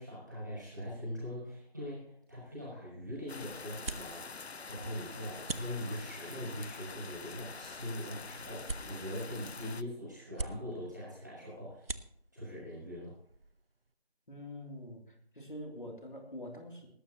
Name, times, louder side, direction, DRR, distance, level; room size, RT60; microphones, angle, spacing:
voice 1, 0.0-4.4 4.7-12.0 12.3-13.1, equal, 20° right, -8 dB, 6.2 m, -42 dB
sound 1, 2.4-13.9, right 2 dB, 65° right, 0.8 m, -47 dB
sound 2, 3.3-9.8, left 4 dB, 85° left, 0.7 m, -46 dB
voice 2, 14.3-16.9, left 1 dB, 50° left, 1 dB, 3.1 m, -45 dB
19.5 x 12.5 x 3.0 m, 0.67 s
figure-of-eight pair, 180°, 31 cm